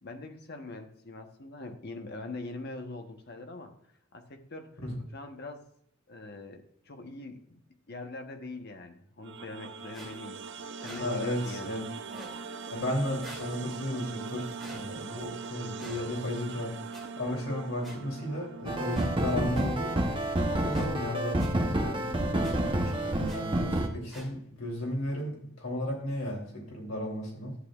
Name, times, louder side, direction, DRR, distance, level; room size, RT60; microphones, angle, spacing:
voice 1, 0.0-3.7 4.1-4.7 5.1-5.6 6.1-7.6 7.9-10.4 10.8-11.7, left 2 dB, 50° left, 5 dB, 1.1 m, -42 dB
sound 1, 9.2-20.3, right 4 dB, 60° right, 0.6 m, -42 dB
sound 2, 9.9-10.1 10.8-11.0 12.0-12.4 13.2-13.5 14.6-14.8 15.7-16.0 16.9-17.0 17.8-17.9 18.9-19.1 19.5-19.6 20.7-20.9 21.4-21.5 22.4-22.5 23.2-23.4 24.1-24.3, right 1 dB, ahead, 2.9 m, -47 dB
voice 2, 11.0-11.8 12.7-19.9 20.4-27.5, left 1 dB, 80° left, -1 dB, 3.2 m, -34 dB
sound 3, 18.7-23.9, right 1 dB, 25° right, 1.0 m, -29 dB
11.5 x 8.4 x 2.5 m, 0.70 s
head